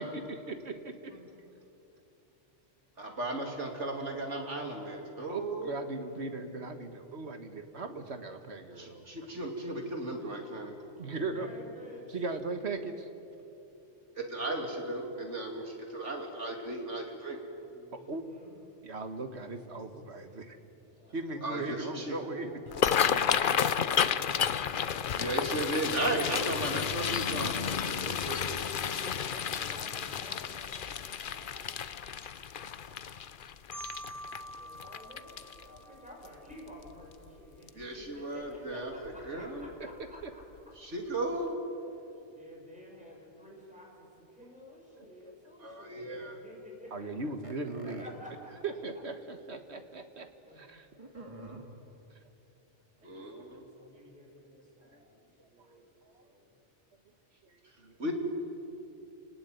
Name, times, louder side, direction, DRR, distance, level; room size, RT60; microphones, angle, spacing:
voice 1, 0.0-1.1 5.3-9.1 11.0-11.5 12.1-13.1 18.1-18.2 18.8-20.6 21.1-22.5 40.2-40.3 46.9-48.0 48.6-50.3 50.6-50.9 53.5-53.9 54.9-55.0 55.4-55.5 56.2-56.3 57.8-57.9, right 3 dB, 65° right, 7 dB, 1.9 m, -38 dB
voice 2, 1.1-1.4 1.9-2.0 5.3-6.5 9.2-9.4 10.9-12.2 13.9-14.0 17.6-18.6 20.7-25.4 25.6-26.7 28.6-33.0 33.6-33.7 34.3-40.7 41.9-47.3 47.8-48.5 50.5-50.7 52.4-52.5 52.9-56.5, left 1 dB, 5° right, -3 dB, 6.8 m, -52 dB
voice 3, 3.0-5.7 8.8-10.7 14.2-17.4 21.4-22.2 25.2-28.7 37.7-39.7 40.8-41.6 45.6-46.3 53.0-53.6 58.0-58.1, right 1 dB, 80° right, 2 dB, 3.4 m, -36 dB
sound 1, 22.7-35.8 36.3-36.5 36.9-37.3 37.7-37.8 39.1-39.3 39.6-39.7 40.2-40.3, left 8 dB, 50° left, 0.8 m, -31 dB
Marimba xylophone, 33.7-36.6, equal, 30° left, 4.6 m, -46 dB
sound 2, 47.4-48.1 49.0-49.1 49.4-49.5 51.0-51.6, right 1 dB, 25° right, 2.6 m, -47 dB
29.0 x 19.0 x 9.4 m, 2.9 s
omnidirectional pair, 1.2 m